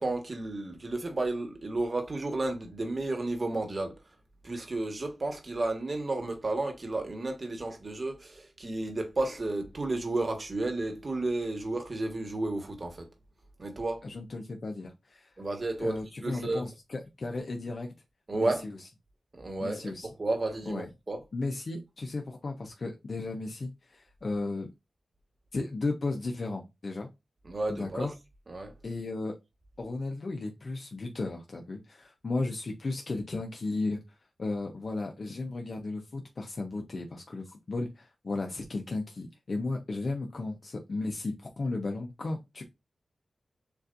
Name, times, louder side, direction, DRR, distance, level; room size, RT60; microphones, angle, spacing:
voice 1, 0.0-3.9 4.4-13.1 13.6-14.0 15.4-16.6 18.3-18.6 19.3-19.8 20.2-21.2 27.4-28.1 28.5-28.7, right 2 dB, 45° right, 1.5 m, -32 dB
voice 2, 14.0-15.3 15.8-17.9 18.3-18.8 19.6-20.1 20.7-20.9 21.3-24.7 25.5-27.1 27.7-28.1 28.8-29.4 29.8-42.6, left 3 dB, 60° left, 0.8 m, -35 dB
7.1 x 2.6 x 2.6 m
wide cardioid pair, 80°, 0 cm